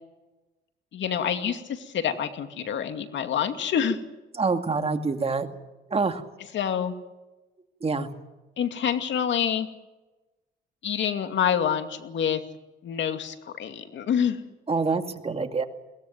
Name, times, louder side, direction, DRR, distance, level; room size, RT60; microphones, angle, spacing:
voice 1, 0.9-4.0 6.5-6.9 8.6-9.7 10.8-12.4 12.8-14.4, left 8 dB, 65° left, 7 dB, 2.4 m, -27 dB
voice 2, 4.4-5.5 5.9-6.2 7.8-8.1 14.7-15.6, right 4 dB, 30° right, 7 dB, 2.3 m, -26 dB
22.0 x 17.0 x 9.3 m, 1.1 s
cardioid pair, 90°, 20 cm